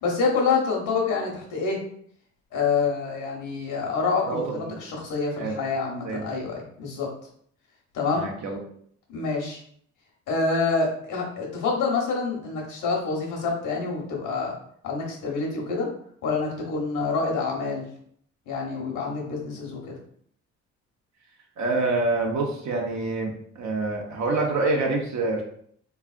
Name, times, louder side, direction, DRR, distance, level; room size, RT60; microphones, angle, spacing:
voice 1, 0.0-1.8 2.5-7.1 7.9-8.3 9.1-9.6 10.3-14.5 14.8-15.9 16.2-17.9 18.5-19.9, left 4 dB, 85° left, -1 dB, 1.2 m, -27 dB
voice 2, 4.2-4.8 5.4-5.6 6.0-6.2 8.1-8.6 21.6-25.4, right 3 dB, 65° right, 1 dB, 1.0 m, -26 dB
3.5 x 3.3 x 2.5 m, 0.63 s
cardioid pair, 90°, 30 cm